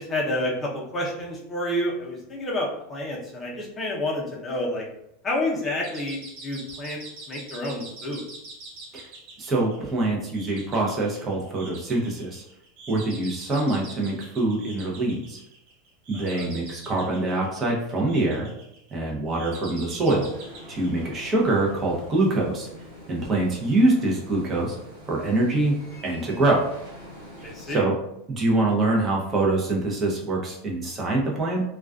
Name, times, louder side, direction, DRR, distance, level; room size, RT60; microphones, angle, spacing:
voice 1, 0.0-4.9 5.2-7.0 7.3-8.2 16.1-16.5 27.4-27.9, left 1 dB, 20° left, -3 dB, 0.7 m, -29 dB
sound 1, 5.6-21.7, right 3 dB, 65° right, 0.8 m, -44 dB
voice 2, 9.4-12.4 12.9-15.4 16.1-18.5 18.9-20.3 20.7-22.7 23.1-24.8 25.1-25.7 26.0-26.7 27.4-27.9 28.3-31.6, right 2 dB, 25° right, -2 dB, 0.7 m, -24 dB
sound 2, 20.1-27.8, equal, 80° right, 1.2 m, -44 dB
2.4 x 2.2 x 2.3 m, 0.79 s
supercardioid pair, 125°, 0 cm